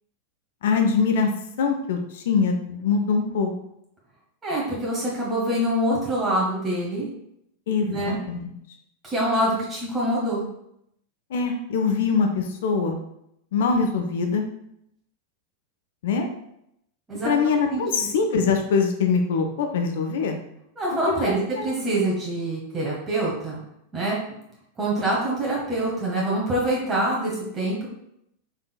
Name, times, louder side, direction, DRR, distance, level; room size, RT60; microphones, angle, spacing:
voice 1, 0.6-1.3 1.6-3.5 7.7-8.5 11.3-13.0 13.5-14.5 16.0-16.3 17.2-20.4 21.1-21.7, left 5 dB, 55° left, 4 dB, 0.5 m, -23 dB
voice 2, 4.4-7.1 7.8-8.2 9.0-10.4 17.1-17.3 17.7-18.1 20.7-23.6 23.9-24.2 24.8-27.9, right 1 dB, 20° right, -5 dB, 1.4 m, -25 dB
5.3 x 3.6 x 2.2 m, 0.77 s
figure-of-eight pair, 90°, 0 cm